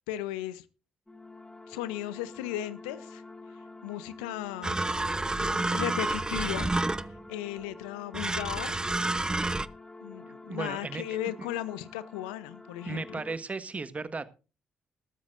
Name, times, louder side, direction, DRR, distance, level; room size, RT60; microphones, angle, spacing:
voice 1, 0.1-0.6 1.7-3.2 3.8-4.8 5.4-6.7 7.3-8.8 10.0-13.2, left 13 dB, 80° left, 16 dB, 0.8 m, -36 dB
sound 1, 1.1-13.4, left 3 dB, 10° left, 2.7 m, -48 dB
sound 2, 4.6-7.3 8.1-9.7, right 2 dB, 15° right, 0.8 m, -29 dB
voice 2, 10.5-11.2 12.8-14.3, right 3 dB, 30° right, 13 dB, 1.5 m, -35 dB
20.0 x 13.0 x 2.6 m, 0.33 s
figure-of-eight pair, 40°, 4 cm